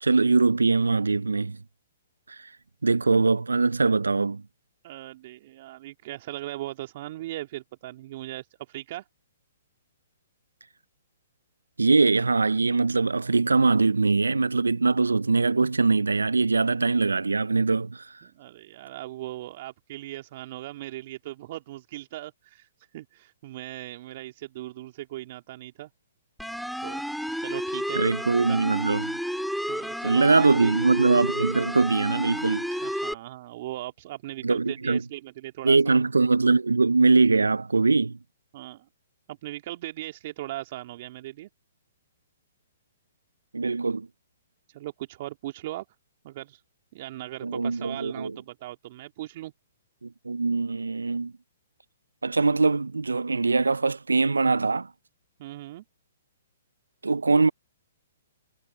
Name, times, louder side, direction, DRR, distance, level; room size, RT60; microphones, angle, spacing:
voice 1, 0.0-1.6 2.8-4.4 11.8-18.1 27.9-29.1 30.0-32.7 34.4-35.0 35.6-38.2 43.5-44.1 47.4-48.4 50.0-51.3 52.2-54.9 57.0-57.5, right 3 dB, 90° right, 0.5 m, -22 dB
voice 2, 4.8-9.0 18.2-22.7 22.9-25.9 26.8-27.0 27.4-28.0 28.5-28.6 29.7-30.7 32.8-36.0 38.5-38.9 39.3-41.5 44.7-45.9 46.2-46.6 46.9-49.5 55.4-55.8, right 15 dB, 50° right, 2.1 m, -38 dB
sound 1, 26.4-33.1, equal, ahead, 4.1 m, -31 dB
hypercardioid pair, 125°, 0 cm